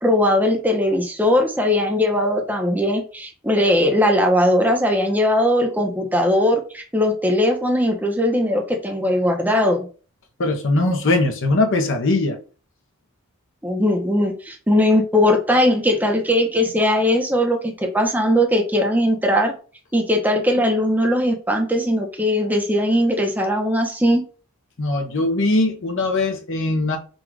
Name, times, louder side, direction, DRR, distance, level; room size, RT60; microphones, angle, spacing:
voice 1, 0.0-9.8 13.6-19.5 19.9-24.2, left 1 dB, 10° right, 0.8 m, -19 dB
voice 2, 10.4-12.4 24.8-27.0, left 2 dB, 60° left, 0.8 m, -20 dB
3.9 x 2.4 x 4.6 m
head